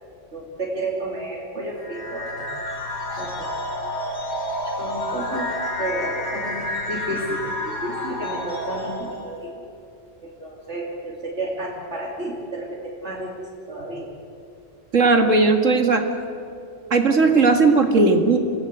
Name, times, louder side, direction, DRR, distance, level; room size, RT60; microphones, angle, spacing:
voice 1, 0.3-2.6 3.2-3.6 4.8-5.5 5.8-9.6 10.2-14.1, right 2 dB, 60° right, -2 dB, 3.2 m, -31 dB
sound 1, 1.8-9.4, left 1 dB, 55° left, 3.6 m, -29 dB
voice 2, 14.9-16.0 16.9-18.4, right 3 dB, 80° right, 6 dB, 2.4 m, -17 dB
27.0 x 18.5 x 8.1 m, 2.6 s
omnidirectional pair, 1.3 m